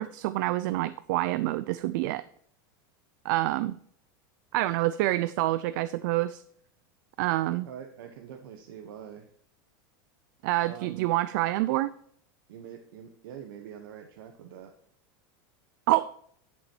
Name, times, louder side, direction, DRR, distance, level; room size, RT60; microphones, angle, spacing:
voice 1, 0.0-2.2 3.2-3.8 4.5-6.4 7.2-7.7 10.4-11.9 15.9-16.1, right 16 dB, 60° right, 15 dB, 0.4 m, -27 dB
voice 2, 7.6-9.3 10.6-11.1 12.5-14.7, right 8 dB, 80° right, 4 dB, 1.2 m, -44 dB
11.0 x 6.9 x 4.6 m, 0.65 s
supercardioid pair, 165°, 12 cm